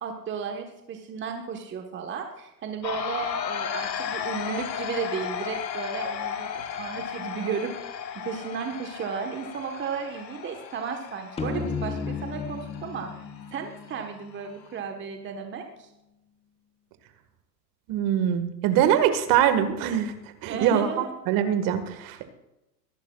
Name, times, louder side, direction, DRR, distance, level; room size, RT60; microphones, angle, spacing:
voice 1, 0.0-7.7 8.1-13.1 13.5-15.9 20.4-21.1, right 6 dB, 25° right, 4 dB, 1.3 m, -34 dB
sound 1, 2.8-14.8, left 8 dB, 80° left, 1.4 m, -35 dB
sound 2, 11.4-14.9, left 5 dB, 10° left, 1.0 m, -34 dB
voice 2, 17.9-20.2 20.4-22.2, right 9 dB, 40° right, 9 dB, 1.7 m, -23 dB
24.0 x 11.0 x 2.4 m, 0.92 s
hypercardioid pair, 100°, 50 cm